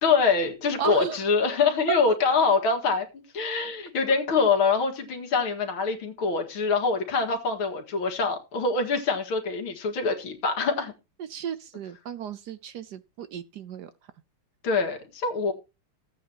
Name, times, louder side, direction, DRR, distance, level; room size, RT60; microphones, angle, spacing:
voice 1, 0.0-10.9 14.6-15.5, left 4 dB, 70° left, 2.6 m, -25 dB
voice 2, 0.8-1.2 11.2-13.9, right 8 dB, 65° right, 1.0 m, -35 dB
15.0 x 8.5 x 2.9 m
omnidirectional pair, 2.4 m